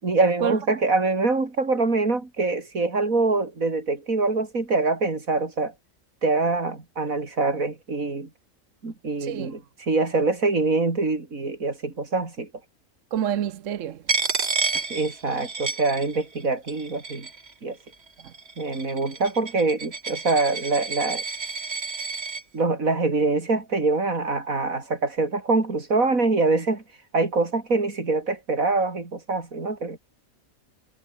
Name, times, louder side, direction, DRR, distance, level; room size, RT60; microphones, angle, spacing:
voice 1, 0.0-5.7 6.2-8.3 8.8-12.5 14.9-17.3 17.6-17.8 18.6-21.2 22.5-26.8 27.1-30.0, right 3 dB, 90° right, 4.1 m, -24 dB
voice 2, 9.2-9.5 13.1-14.0 18.2-18.3, right 10 dB, 70° right, 1.2 m, -27 dB
Coin (dropping), 14.1-16.4 16.7-17.5 18.2-22.4, right 4 dB, 50° right, 2.4 m, -30 dB
omnidirectional pair, 1.4 m